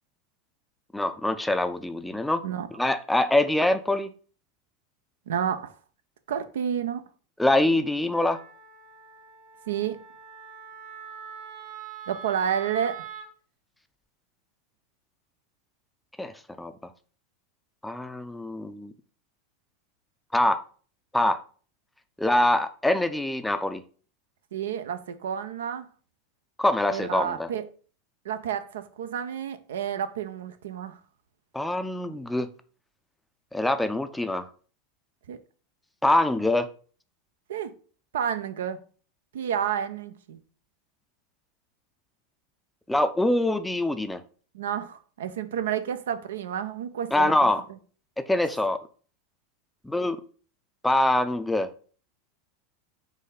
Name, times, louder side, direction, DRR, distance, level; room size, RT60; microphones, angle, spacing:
voice 1, 0.9-2.4 2.8-4.1 7.4-8.4 16.2-16.7 17.8-18.9 20.3-20.6 21.1-21.4 22.2-23.8 26.6-27.5 31.5-32.5 33.5-34.5 36.0-36.7 42.9-44.2 47.1-47.6 48.3-48.8 49.8-50.2 50.8-51.7, left 1 dB, 5° left, 0.4 m, -24 dB
voice 2, 5.3-5.7 6.3-7.0 9.7-10.0 12.1-13.1 24.5-25.9 26.9-27.6 28.2-31.0 35.3-35.4 37.5-37.7 38.1-38.8 39.3-40.4 44.5-47.5, right 8 dB, 80° right, 0.4 m, -30 dB
Wind instrument woodwind instrument, 8.1-13.3, right 7 dB, 50° right, 1.6 m, -43 dB
4.0 x 2.6 x 4.0 m
hypercardioid pair, 95°, 0 cm